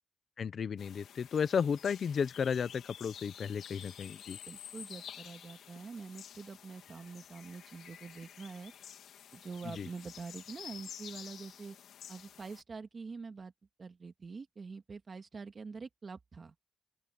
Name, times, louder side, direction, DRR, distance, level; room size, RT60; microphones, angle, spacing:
voice 1, 0.4-4.4 9.6-9.9, left 6 dB, 50° left, 0.8 m, -33 dB
sound 1, 0.8-12.6, left 9 dB, 80° left, 2.9 m, -51 dB
voice 2, 4.5-8.7 9.3-11.8 12.1-13.5 13.8-16.5, right 4 dB, 35° right, 2.1 m, -45 dB
open air
cardioid pair, 120°, 0 cm